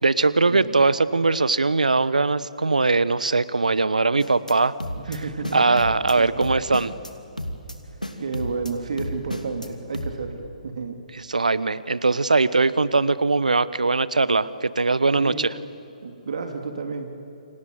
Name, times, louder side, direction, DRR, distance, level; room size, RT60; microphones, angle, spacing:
voice 1, 0.0-4.8 5.5-6.9 11.3-15.5, right 3 dB, 75° right, 17 dB, 1.0 m, -21 dB
sound 1, 4.2-4.5 4.8-5.2 5.4-6.1 6.4-7.1 7.4-7.7 8.0-8.7 9.0-9.7 9.9-10.1, equal, 90° left, 2.7 m, -32 dB
voice 2, 4.9-5.9 6.1-6.4 8.2-11.0 15.2-15.4 16.0-17.2, right 4 dB, 55° right, 5 dB, 2.7 m, -31 dB
29.0 x 25.5 x 7.9 m, 2.9 s
figure-of-eight pair, 130°, 4 cm